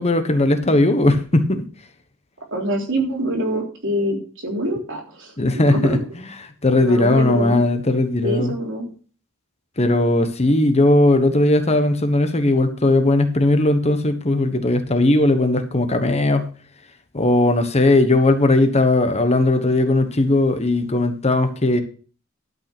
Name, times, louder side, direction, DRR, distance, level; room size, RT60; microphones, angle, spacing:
voice 1, 0.0-1.6 5.4-6.0 6.4-8.5 9.8-16.5 17.1-21.8, left 2 dB, 30° left, 8 dB, 1.2 m, -18 dB
voice 2, 2.5-6.0 6.8-7.6 8.2-8.9, equal, 60° right, 0 dB, 3.5 m, -25 dB
12.0 x 5.4 x 6.1 m, 0.39 s
head